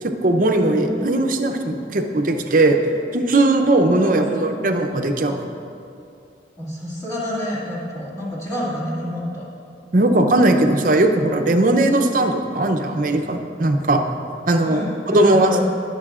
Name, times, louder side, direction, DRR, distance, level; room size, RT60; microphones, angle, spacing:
voice 1, 0.0-2.8 3.1-5.5 9.9-14.0 14.5-15.6, right 2 dB, 45° right, 5 dB, 0.6 m, -18 dB
voice 2, 0.6-0.9 3.9-4.5 6.6-9.5 14.6-15.6, left 1 dB, 20° left, -7 dB, 2.1 m, -28 dB
20.0 x 6.8 x 2.4 m, 2.6 s
head